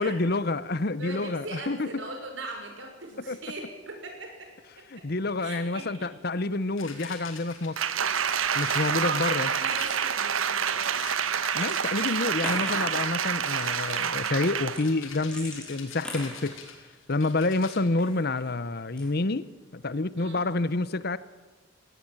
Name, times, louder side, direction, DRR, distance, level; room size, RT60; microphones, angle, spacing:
voice 1, 0.0-1.9 3.3-3.4 4.9-7.8 8.5-9.5 11.5-16.6 17.1-19.5 19.7-21.2, left 2 dB, 50° left, 17 dB, 0.9 m, -28 dB
voice 2, 1.0-4.5 5.0-5.1 5.4-6.1 8.9-10.9 20.2-20.5, right 2 dB, 65° right, 4 dB, 5.9 m, -39 dB
sound 1, 6.8-7.9 8.5-9.3 9.7-10.3 10.9-11.6 11.9-12.3 12.9-13.2 13.5-17.8, left 6 dB, 80° left, 5.5 m, -45 dB
Applause, 7.8-14.9 15.3-15.4, right 7 dB, 80° right, 1.1 m, -28 dB
sound 2, 10.8-11.8 12.1-13.0 13.8-14.1 14.6-17.1 17.9-18.5 18.9-19.3, left 1 dB, 5° left, 5.6 m, -40 dB
20.0 x 17.0 x 9.0 m, 1.3 s
head